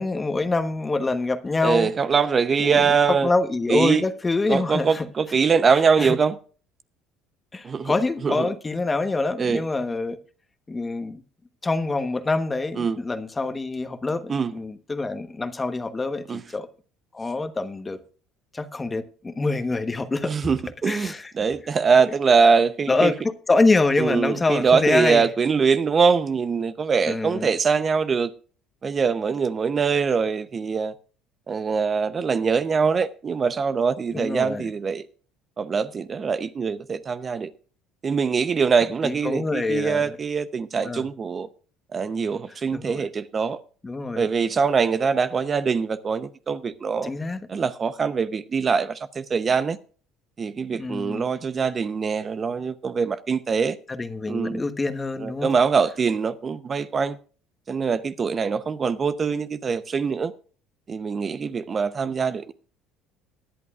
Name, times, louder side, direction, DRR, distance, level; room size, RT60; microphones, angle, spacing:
voice 1, 0.0-1.9 2.6-5.1 6.0-6.2 7.5-10.2 10.7-11.2 11.6-16.7 17.1-18.0 18.5-20.3 20.9-21.3 22.9-25.3 27.1-27.5 34.1-34.6 39.0-40.2 40.8-41.0 42.7-43.1 43.8-44.3 47.0-47.4 50.7-51.2 53.9-55.5, left 3 dB, 20° left, 1.1 m, -25 dB
voice 2, 1.6-3.3 3.7-4.0 4.5-6.4 7.6-7.9 8.2-8.5 9.4-9.6 12.8-13.0 14.3-14.5 16.3-16.4 20.2-23.1 24.0-28.3 28.8-30.9 31.5-35.0 35.6-37.5 38.0-41.5 41.9-43.6 44.1-47.1 47.5-49.8 50.4-53.8 54.3-54.6 55.2-57.2 57.7-60.3 60.9-62.5, right 5 dB, 35° right, 0.8 m, -23 dB
19.5 x 11.0 x 2.4 m
supercardioid pair, 85°, 0 cm